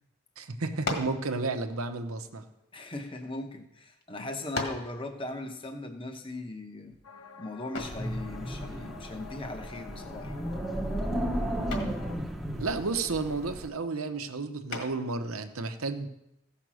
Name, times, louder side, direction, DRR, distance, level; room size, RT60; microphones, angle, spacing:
voice 1, 0.4-2.4 12.6-16.1, right 3 dB, 80° right, 7 dB, 0.9 m, -32 dB
sound 1, 0.8-1.2 2.2-3.3 4.0-4.1 4.5-4.9 7.7-8.1 10.0-10.4 10.7-11.1 11.7-12.0 14.7-15.2, left 2 dB, 50° left, 1.7 m, -36 dB
voice 2, 2.7-6.9 7.4-10.5, left 2 dB, 25° left, 5 dB, 1.0 m, -39 dB
sound 2, 7.0-12.2, left 4 dB, 75° left, 0.8 m, -48 dB
Wind, 7.8-13.7, equal, ahead, 0.9 m, -34 dB
15.0 x 5.8 x 6.2 m, 0.84 s
head